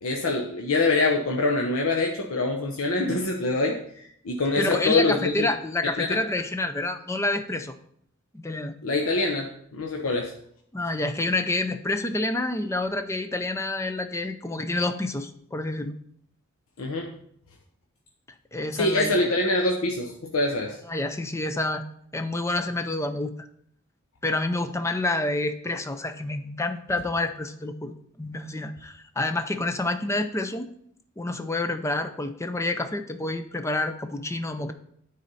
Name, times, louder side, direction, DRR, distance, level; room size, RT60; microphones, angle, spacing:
voice 1, 0.0-5.5 6.0-6.2 8.8-10.3 16.8-17.1 18.7-20.8, left 2 dB, 85° left, 1 dB, 0.8 m, -25 dB
voice 2, 4.6-7.7 8.3-8.7 10.7-15.9 18.5-19.1 20.9-21.8 22.1-23.5 24.2-30.7 31.2-34.7, left 2 dB, 15° left, 8 dB, 0.4 m, -28 dB
9.4 x 4.2 x 4.0 m, 0.68 s
head